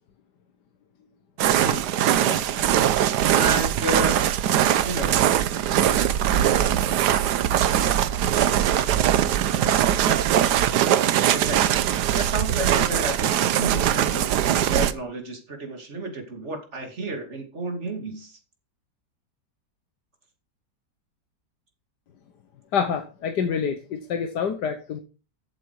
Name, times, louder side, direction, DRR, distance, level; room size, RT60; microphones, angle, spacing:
sound 1, 1.4-14.9, right 10 dB, 75° right, 1.3 m, -21 dB
voice 1, 2.1-2.6 3.3-4.4 4.8-5.2 11.3-11.7 12.1-18.4, right 1 dB, 40° right, 4 dB, 2.8 m, -32 dB
voice 2, 22.7-25.0, left 6 dB, 75° left, 6 dB, 1.7 m, -27 dB
13.5 x 8.3 x 4.8 m, 0.35 s
omnidirectional pair, 1.8 m